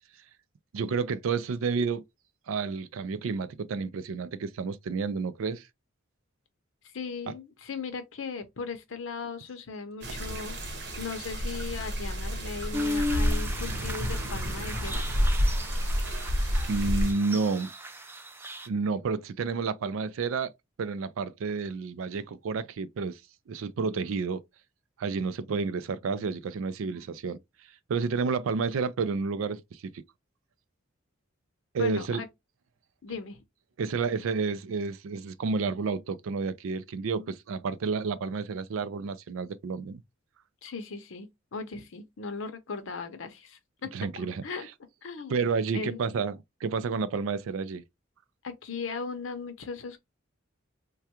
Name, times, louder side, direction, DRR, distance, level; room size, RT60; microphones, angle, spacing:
voice 1, 0.7-2.0 2.5-5.7 16.7-17.7 18.7-20.5 20.8-23.2 23.5-24.4 25.0-27.4 27.9-30.0 31.7-32.3 33.8-40.0 43.9-44.4 45.3-47.8, right 4 dB, 80° right, 0.4 m, -30 dB
voice 2, 6.9-10.6 11.0-15.0 31.8-32.3 33.0-33.4 40.6-43.9 44.4-44.7 45.0-45.4 45.7-46.0 48.4-50.0, left 4 dB, 70° left, 0.6 m, -37 dB
sound 1, 10.0-17.1, equal, 60° right, 0.9 m, -29 dB
sound 2, 12.7-18.7, left 1 dB, 10° right, 0.4 m, -36 dB
3.4 x 2.2 x 2.8 m
head